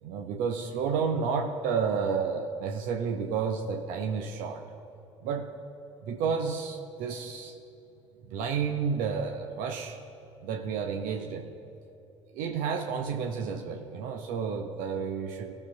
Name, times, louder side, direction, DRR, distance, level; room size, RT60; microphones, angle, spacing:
voice 1, 0.0-4.6 5.2-5.5 6.0-7.5 8.3-10.0 10.4-11.5 12.3-15.5, right 6 dB, 55° right, 4 dB, 0.9 m, -31 dB
20.0 x 7.0 x 2.8 m, 2.9 s
figure-of-eight pair, 55°, 17 cm